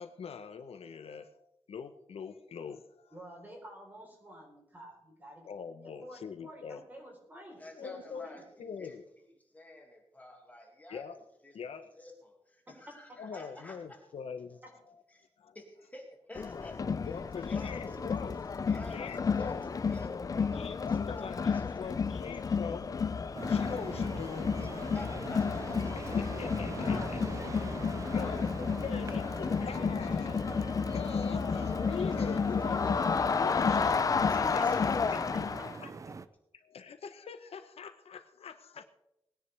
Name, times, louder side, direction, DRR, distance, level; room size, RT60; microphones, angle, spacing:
voice 1, 0.0-3.2 5.4-6.8 7.8-8.3 8.6-9.0 10.9-11.2 11.5-11.9 13.2-14.6 15.4-15.6 17.1-18.4 18.9-19.6 20.5-24.6 25.9-27.2 27.6-27.7 28.1-34.6 35.1-35.2 36.5-38.8, left 6 dB, 80° left, 9 dB, 0.9 m, -43 dB
voice 2, 3.1-5.5 5.8-8.4 12.7-12.8 13.1-13.2 26.7-29.2 35.3-35.4 35.8-35.9, equal, 15° right, -1 dB, 4.0 m, -50 dB
voice 3, 7.6-9.3 9.5-11.1 11.4-11.6 12.0-14.1 15.1-15.3 15.5-17.1 17.4-18.1 18.7-21.8 24.6-26.3 27.3-27.4 34.3-35.2, left 1 dB, 15° left, 0 dB, 2.3 m, -50 dB
Crowd, 16.3-35.8, left 5 dB, 35° left, 0.4 m, -31 dB
sound 1, 23.3-36.3, right 4 dB, 35° right, 0.5 m, -43 dB
20.5 x 10.0 x 3.4 m, 0.80 s
wide cardioid pair, 175°, 10 cm